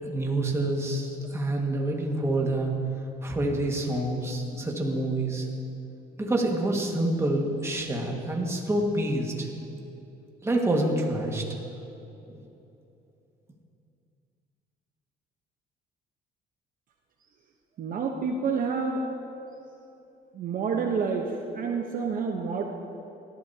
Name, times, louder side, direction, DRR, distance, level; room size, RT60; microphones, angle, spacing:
voice 1, 0.0-2.7 3.2-5.5 6.2-9.5 10.4-11.4 12.3-12.4, right 1 dB, 15° right, 0 dB, 1.8 m, -27 dB
voice 2, 17.8-19.0 20.3-22.6, right 5 dB, 55° right, 2 dB, 1.0 m, -28 dB
18.5 x 12.5 x 2.9 m, 2.9 s
cardioid pair, 110°, 17 cm